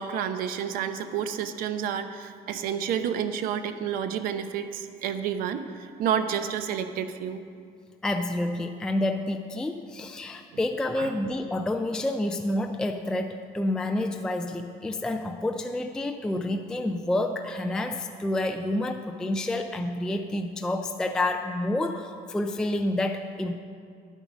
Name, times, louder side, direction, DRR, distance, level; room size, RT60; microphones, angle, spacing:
voice 1, 0.0-7.4 11.0-11.1, right 8 dB, 65° right, 9 dB, 0.8 m, -30 dB
voice 2, 8.0-23.5, left 1 dB, 5° left, 5 dB, 0.3 m, -29 dB
11.5 x 9.0 x 6.1 m, 2.2 s
cardioid pair, 180°, 16 cm